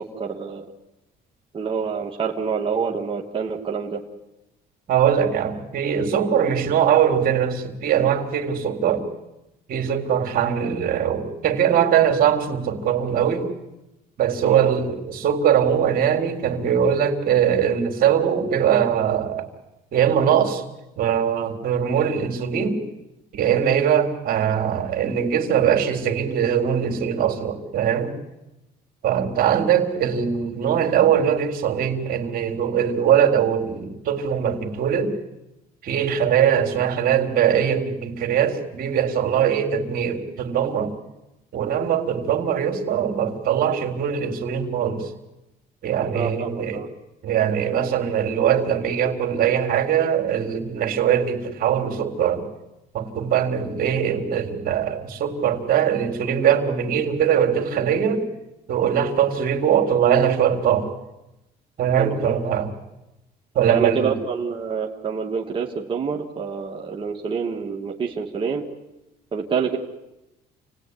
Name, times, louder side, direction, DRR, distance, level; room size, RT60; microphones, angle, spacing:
voice 1, 0.2-0.6 1.5-4.0 14.4-14.7 46.1-46.9 62.0-62.4 63.7-68.6 69.3-69.8, right 6 dB, 30° right, -1 dB, 2.6 m, -27 dB
voice 2, 4.9-9.1 9.7-13.5 14.2-19.5 19.9-20.6 21.0-22.8 23.3-28.1 29.0-35.1 35.8-40.9 41.5-45.1 45.8-46.8 47.2-52.4 52.9-58.2 58.7-60.9 61.8-62.7 63.6-64.2, right 8 dB, 60° right, 4 dB, 3.8 m, -21 dB
29.0 x 19.5 x 9.9 m, 0.98 s
cardioid pair, 110°, 17 cm